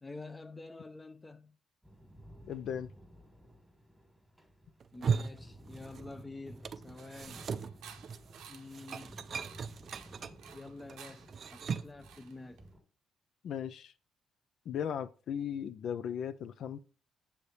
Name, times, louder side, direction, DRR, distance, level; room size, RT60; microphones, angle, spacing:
voice 1, 0.0-1.6 4.9-7.4 8.5-9.2 10.5-11.3 11.5-12.7, left 3 dB, 20° left, 0.6 m, -48 dB
sound 1, 1.8-12.8, right 1 dB, ahead, 1.6 m, -55 dB
voice 2, 2.4-2.9 13.4-13.9 14.7-16.8, left 8 dB, 70° left, 0.4 m, -37 dB
sound 2, 4.8-6.2 6.5-12.0, right 6 dB, 50° right, 0.4 m, -38 dB
sound 3, 7.0-12.7, right 8 dB, 90° right, 0.7 m, -54 dB
7.0 x 3.3 x 4.1 m
cardioid pair, 90°, 0 cm